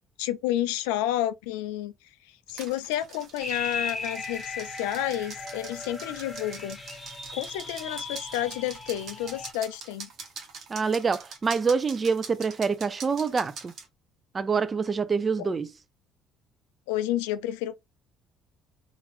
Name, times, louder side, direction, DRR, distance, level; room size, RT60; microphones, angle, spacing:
voice 1, 0.2-1.9 2.5-6.8 7.3-10.1 15.4-15.5 16.9-17.7, left 13 dB, 80° left, 0.3 m, -30 dB
sound 1, 2.5-13.9, right 5 dB, 55° right, 1.1 m, -44 dB
sound 2, 3.4-9.5, left 3 dB, 25° left, 1.3 m, -37 dB
voice 2, 10.7-13.7 14.3-15.7, right 5 dB, 35° right, 0.5 m, -26 dB
2.9 x 2.5 x 3.0 m
hypercardioid pair, 55°, 0 cm